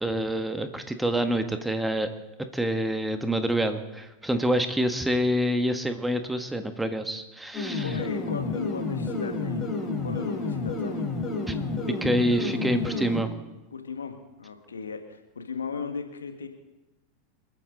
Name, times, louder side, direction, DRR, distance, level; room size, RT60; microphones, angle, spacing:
voice 1, 0.0-2.1 2.5-8.0 11.5-11.6 12.0-13.3, right 1 dB, 5° right, 7 dB, 1.5 m, -27 dB
sound 1, 7.5-13.2, left 3 dB, 25° left, 3.5 m, -30 dB
voice 2, 7.7-9.6 10.0-11.0 13.7-16.5, left 5 dB, 80° left, 6 dB, 1.8 m, -36 dB
28.5 x 9.9 x 4.0 m, 1.0 s
figure-of-eight pair, 90°, 0 cm